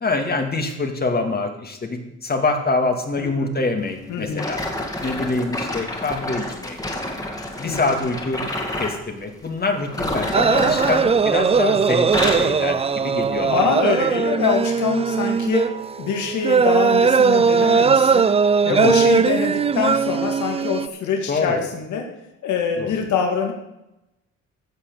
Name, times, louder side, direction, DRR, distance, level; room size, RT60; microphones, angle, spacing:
voice 1, 0.0-4.6 5.0-6.8 7.6-8.4 8.8-13.6 18.7-19.0 21.3-21.6 22.8-22.9, left 3 dB, 30° left, 4 dB, 2.2 m, -25 dB
voice 2, 3.2-3.5 4.1-4.4 7.6-7.9 13.4-18.3 18.6-22.1 22.4-23.5, left 6 dB, 75° left, 3 dB, 2.1 m, -24 dB
sound 1, 4.3-9.0 9.8-11.6 11.9-12.6 13.2-13.4 14.0-14.1, left 1 dB, 10° left, 2.3 m, -28 dB
sound 2, 10.3-20.9, right 5 dB, 20° right, 0.4 m, -19 dB
15.0 x 5.8 x 6.9 m, 0.91 s
cardioid pair, 90°, 30 cm